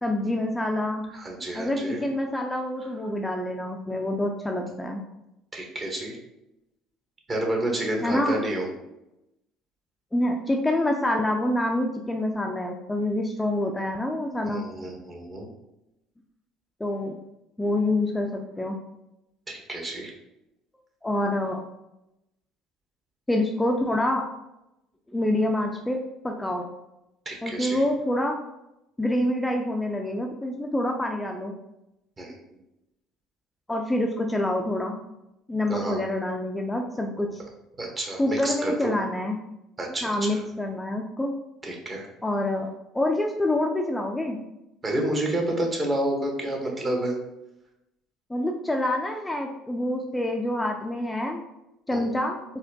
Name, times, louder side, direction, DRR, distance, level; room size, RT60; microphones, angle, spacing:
voice 1, 0.0-1.0 1.5-5.0 8.0-8.4 10.1-14.7 16.8-17.1 17.6-18.8 21.0-21.6 23.3-24.3 25.1-26.7 27.4-28.4 29.0-31.5 33.7-35.0 35.5-37.4 38.2-39.4 40.0-41.3 42.2-44.4 46.6-46.8 48.3-51.4 51.9-52.4, left 1 dB, 10° left, 2 dB, 0.4 m, -26 dB
voice 2, 1.1-2.0 5.5-6.2 7.3-8.7 14.4-15.5 19.5-20.1 27.2-27.8 32.2-32.4 35.7-36.0 37.8-38.9 39.8-40.4 41.6-42.1 44.8-47.1 51.9-52.1, right 1 dB, 30° right, 0 dB, 1.0 m, -29 dB
4.1 x 2.2 x 2.7 m, 0.90 s
hypercardioid pair, 70°, 0 cm